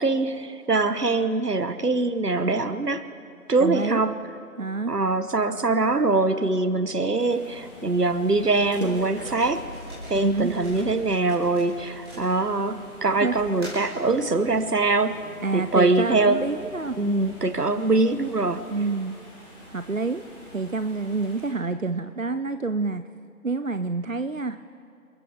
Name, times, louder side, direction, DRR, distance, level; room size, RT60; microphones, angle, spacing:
voice 1, 0.0-3.0 3.5-4.1 4.9-9.6 10.1-15.1 15.5-16.4 17.0-18.6, right 3 dB, 75° right, 11 dB, 1.2 m, -23 dB
voice 2, 3.6-4.0 4.6-5.0 10.1-10.5 13.2-13.4 15.4-17.0 18.7-19.2 19.6-20.2 20.5-23.0 23.4-24.6, right 3 dB, 55° right, 10 dB, 0.6 m, -27 dB
sound 1, 7.1-21.5, left 1 dB, 20° left, 4.2 m, -46 dB
sound 2, 8.4-12.7 13.3-14.0, equal, 15° right, 3.9 m, -42 dB
sound 3, 8.6-14.8, equal, 35° right, 1.3 m, -44 dB
28.5 x 14.0 x 3.5 m, 2.4 s
figure-of-eight pair, 170°, 47 cm